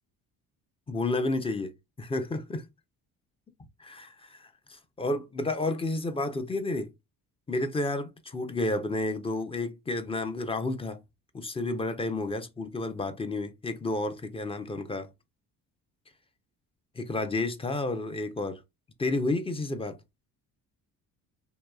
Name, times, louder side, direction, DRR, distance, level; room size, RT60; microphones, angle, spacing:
voice 1, 0.9-1.7 2.0-2.7 3.8-6.9 7.5-11.0 11.3-15.1 17.0-18.6 19.0-20.0, left 2 dB, 15° left, 0.4 m, -31 dB
2.8 x 2.2 x 2.2 m
cardioid pair, 100°, 38 cm